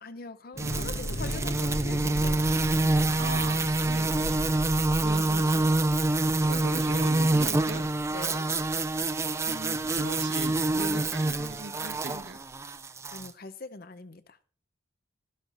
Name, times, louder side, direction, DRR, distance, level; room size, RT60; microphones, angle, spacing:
voice 1, 0.0-2.6 8.1-8.5 13.1-14.4, left 3 dB, 50° left, 0.7 m, -43 dB
Thunder / Explosion, 0.5-8.7, left 1 dB, 85° left, 2.0 m, -37 dB
sound 1, 0.6-13.3, right 2 dB, 15° right, 0.4 m, -26 dB
voice 2, 3.1-4.6 5.0-5.7 6.4-7.9 9.4-12.4, right 2 dB, 65° right, 1.4 m, -39 dB
12.0 x 12.0 x 2.6 m
head